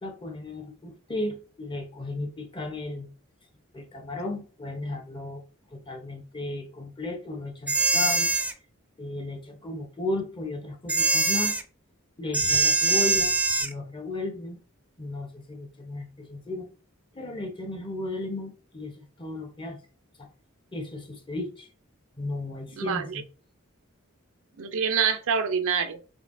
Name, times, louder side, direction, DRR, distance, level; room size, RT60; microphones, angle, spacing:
voice 1, 0.0-3.1 3.7-5.4 5.7-8.3 9.0-11.5 12.2-13.3 13.6-14.6 15.0-16.7 17.1-19.8 20.2-20.3 20.7-21.7 22.2-23.2, left 2 dB, 25° left, 0.9 m, -34 dB
sound 1, 7.7-8.5 10.9-11.6 12.3-13.7, right 3 dB, 5° right, 0.3 m, -23 dB
voice 2, 22.8-23.2 24.6-26.0, right 6 dB, 70° right, 0.5 m, -26 dB
5.1 x 3.1 x 2.6 m
head